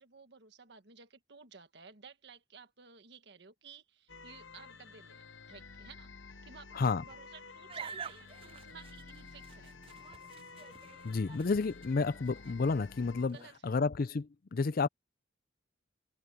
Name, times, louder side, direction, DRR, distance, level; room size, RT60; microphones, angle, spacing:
voice 1, 0.0-9.7 13.3-13.9, right 5 dB, 60° right, 1.6 m, -56 dB
sound 1, 4.1-13.2, left 4 dB, 80° left, 1.0 m, -52 dB
sound 2, 7.7-13.6, right 6 dB, 30° right, 0.5 m, -49 dB
voice 2, 11.0-13.4 13.6-14.9, left 4 dB, 50° left, 0.5 m, -31 dB
head